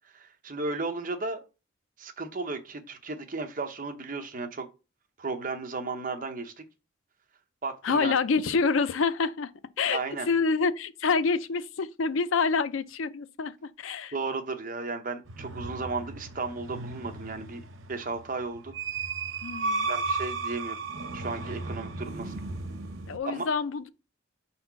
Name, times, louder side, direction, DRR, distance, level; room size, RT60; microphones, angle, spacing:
voice 1, 0.1-1.4 2.0-4.7 5.2-6.5 7.6-8.1 9.8-10.3 14.1-17.6 17.9-18.7 19.9-20.8 21.1-22.3 23.2-23.5, right 3 dB, 45° right, 0.8 m, -34 dB
voice 2, 7.8-9.5 9.8-10.0 10.3-14.1 19.4-19.9 23.1-23.9, left 4 dB, 80° left, 0.5 m, -27 dB
sound 1, 15.3-23.2, right 3 dB, 85° right, 0.8 m, -35 dB
4.6 x 4.3 x 5.7 m
head